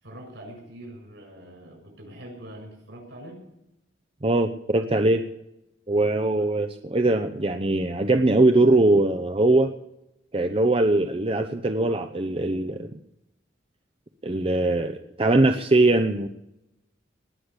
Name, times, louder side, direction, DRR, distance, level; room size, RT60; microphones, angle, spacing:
voice 1, 0.0-3.4 6.4-6.5 10.5-10.7, right 1 dB, 65° right, 1 dB, 7.0 m, -43 dB
voice 2, 4.2-5.2 5.9-9.7 10.3-12.9 14.2-16.3, right 2 dB, 30° right, 6 dB, 0.7 m, -21 dB
19.5 x 6.6 x 9.8 m, 0.85 s
head